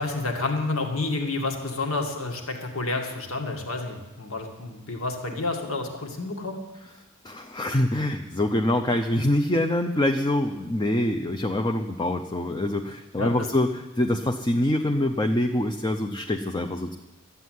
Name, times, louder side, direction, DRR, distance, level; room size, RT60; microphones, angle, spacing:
voice 1, 0.0-6.6 13.2-13.5, left 3 dB, 75° left, 4 dB, 2.1 m, -29 dB
voice 2, 7.2-17.0, left 1 dB, 20° left, 5 dB, 0.6 m, -25 dB
13.0 x 8.3 x 9.5 m, 1.1 s
head